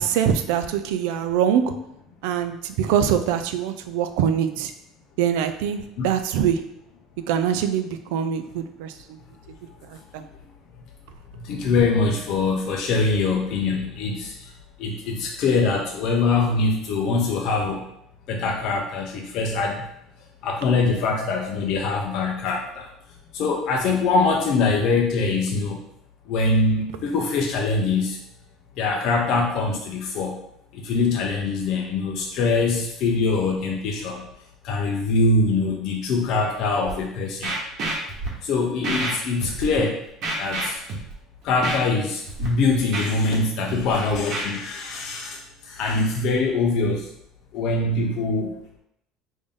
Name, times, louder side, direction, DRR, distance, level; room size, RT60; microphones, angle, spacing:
voice 1, 0.0-1.7 2.2-4.7 5.2-6.6 7.3-8.9 10.1-10.2, right 8 dB, 85° right, 9 dB, 0.3 m, -23 dB
voice 2, 11.4-14.3 14.8-17.8 18.3-19.8 20.4-22.9 23.3-25.8 26.3-28.2 28.8-30.4 30.7-34.2 34.6-37.5 38.4-40.0 40.4-40.8 41.4-45.4 45.7-47.0 47.5-48.5, left 3 dB, 55° left, 0 dB, 0.5 m, -23 dB
Scratching (performance technique), 36.8-36.9 37.4-38.3 38.8-39.1 39.4-39.8 40.2-41.1 41.6-41.8 42.3-42.5 42.7-43.3 43.7-44.4, right 2 dB, 50° right, 1.1 m, -28 dB
3.5 x 2.6 x 3.6 m, 0.77 s
cardioid pair, 150°, 0 cm